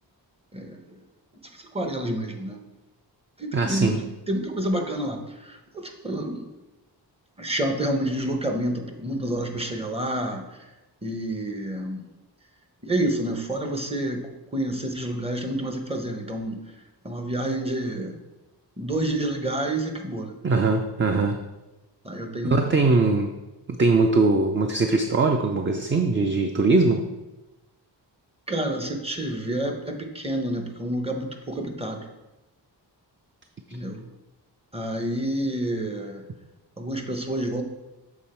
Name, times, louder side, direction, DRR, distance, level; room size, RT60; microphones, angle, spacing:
voice 1, 1.6-2.6 3.4-6.4 7.4-10.4 11.0-12.0 12.8-16.6 17.0-18.1 18.8-20.3 22.0-22.6 28.5-32.1 33.7-34.0 34.7-36.2 36.8-37.6, right 1 dB, 15° right, 4 dB, 0.8 m, -28 dB
voice 2, 3.5-4.0 20.4-21.4 22.5-23.3 23.8-27.1, right 3 dB, 30° right, 4 dB, 0.4 m, -21 dB
7.1 x 3.8 x 4.3 m, 1.0 s
wide cardioid pair, 90°, 42 cm